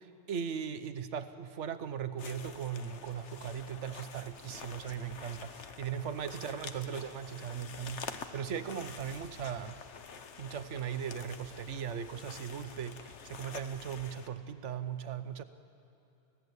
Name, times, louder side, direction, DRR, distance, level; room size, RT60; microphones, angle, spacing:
voice 1, 0.3-9.8 10.4-15.4, right 8 dB, 85° right, 11 dB, 1.2 m, -38 dB
sound 1, 2.2-14.3, left 6 dB, 80° left, 1.4 m, -48 dB
29.0 x 16.5 x 8.2 m, 2.8 s
omnidirectional pair, 1.2 m